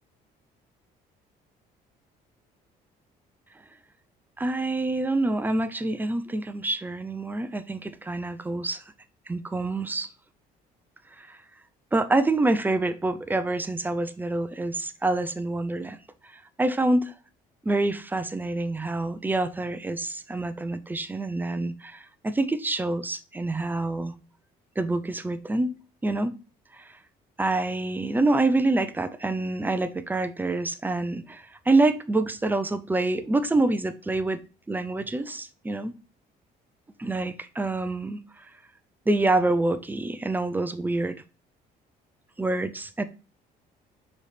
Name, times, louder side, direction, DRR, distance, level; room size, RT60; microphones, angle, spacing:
voice 1, 4.4-8.8 9.3-10.1 11.2-11.4 11.9-16.0 16.6-17.1 17.6-24.2 24.8-25.8 26.0-26.3 26.7-26.9 27.4-34.4 34.7-36.0 37.0-38.5 39.1-41.2 42.4-43.0, right 2 dB, 10° right, 0.6 m, -26 dB
4.7 x 4.2 x 5.1 m
cardioid pair, 110°, 17 cm